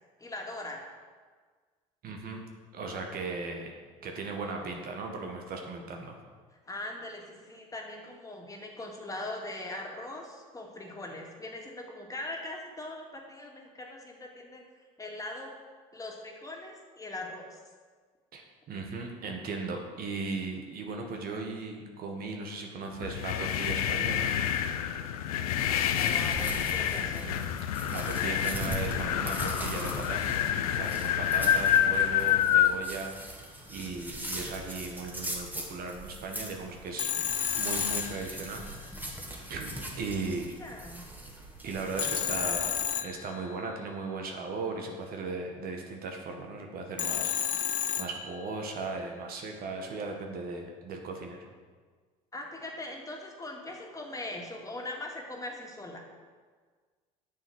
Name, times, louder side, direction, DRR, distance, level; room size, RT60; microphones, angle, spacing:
voice 1, 0.2-0.8 6.6-14.6 15.0-15.5 15.9-17.6 25.4-27.3 40.6-41.0 52.3-56.0, left 2 dB, 20° left, 0 dB, 2.4 m, -41 dB
voice 2, 2.0-2.4 2.7-3.7 4.0-6.2 18.3-24.3 27.9-30.4 30.7-33.1 33.7-37.1 37.5-38.6 39.5-40.5 41.6-47.5 48.0-51.5, right 3 dB, 55° right, 2 dB, 1.7 m, -37 dB
sound 1, 23.0-32.8, left 10 dB, 90° left, 0.6 m, -28 dB
sound 2, 25.9-42.9, right 1 dB, 10° right, 2.2 m, -41 dB
Telephone, 37.0-38.9 42.0-43.8 47.0-48.7, left 10 dB, 45° left, 0.7 m, -32 dB
9.1 x 6.9 x 6.4 m, 1.5 s
hypercardioid pair, 70°, 18 cm